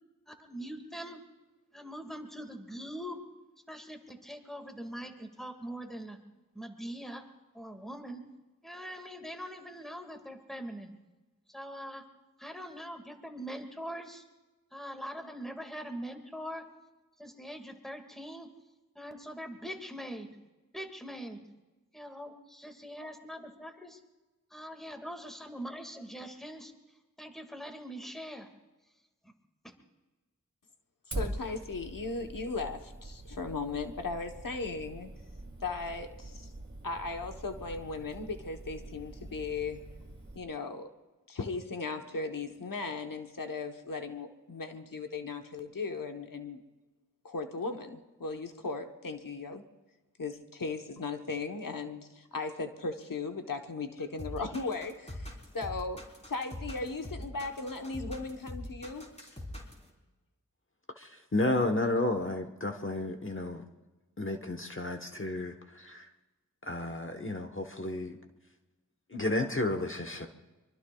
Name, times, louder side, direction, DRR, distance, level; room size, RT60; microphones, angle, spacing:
voice 1, 0.3-1.2 1.7-3.2 3.7-6.2 6.5-7.3 7.5-8.3 8.6-10.9 11.5-12.1 12.4-14.3 14.7-16.7 17.2-18.5 19.0-20.4 20.7-21.5 21.9-24.0 24.5-26.7 27.2-28.5 29.2-29.3 29.6-29.7, equal, ahead, 4 dB, 2.0 m, -42 dB
voice 2, 31.1-35.1 35.6-36.5 36.8-39.8 40.3-40.9 41.3-46.6 47.2-49.6 50.2-59.1, left 3 dB, 90° left, 5 dB, 1.1 m, -37 dB
Fire, 31.1-40.4, right 2 dB, 45° right, 2.5 m, -44 dB
sound 1, 54.2-59.9, left 1 dB, 20° left, 3.8 m, -42 dB
voice 3, 61.0-63.6 64.2-66.1 66.6-68.2 69.1-70.3, left 2 dB, 40° left, 5 dB, 1.1 m, -32 dB
24.5 x 23.5 x 2.3 m, 1.2 s
wide cardioid pair, 55°, 32 cm